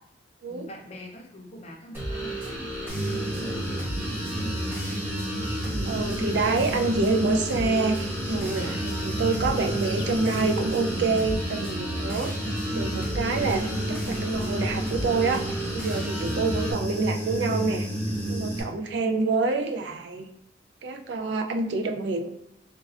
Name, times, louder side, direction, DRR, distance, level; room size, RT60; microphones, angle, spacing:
voice 1, 0.5-3.9, left 1 dB, 35° left, 0 dB, 0.6 m, -44 dB
sound 1, 1.9-16.7, equal, 15° right, 1.0 m, -33 dB
Human voice / Buzz, 2.9-18.6, right 1 dB, 35° right, 1.1 m, -32 dB
voice 2, 5.9-12.3 12.7-17.9 18.3-20.3 20.8-22.3, right 3 dB, 65° right, 5 dB, 0.3 m, -27 dB
sound 2, 8.2-16.3, left 2 dB, 80° left, 0.4 m, -45 dB
3.2 x 2.3 x 2.4 m, 0.80 s
head